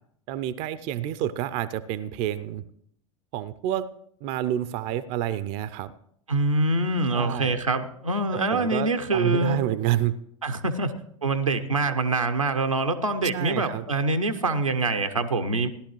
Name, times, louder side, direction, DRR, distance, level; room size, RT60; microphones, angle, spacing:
voice 1, 0.3-2.6 3.3-3.9 4.2-5.9 7.1-7.6 8.3-10.2 13.3-13.8, right 12 dB, 45° right, 16 dB, 0.5 m, -28 dB
voice 2, 6.3-9.6 10.4-10.9 11.2-15.7, right 2 dB, 85° right, 8 dB, 0.8 m, -25 dB
16.0 x 11.5 x 3.1 m, 0.71 s
figure-of-eight pair, 80°, 17 cm